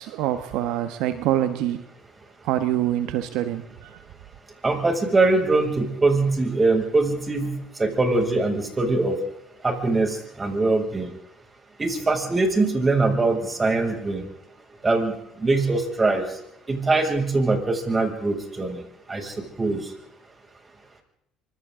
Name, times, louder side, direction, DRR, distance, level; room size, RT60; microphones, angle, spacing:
voice 1, 0.0-1.8 2.4-4.0, right 12 dB, 75° right, 10 dB, 1.4 m, -25 dB
voice 2, 4.6-7.5 7.8-9.2 9.6-11.1 11.8-14.2 14.8-16.2 16.7-18.8 19.1-19.8, right 3 dB, 25° right, 2 dB, 6.9 m, -22 dB
26.0 x 25.5 x 3.9 m, 0.78 s
supercardioid pair, 80°, 0 cm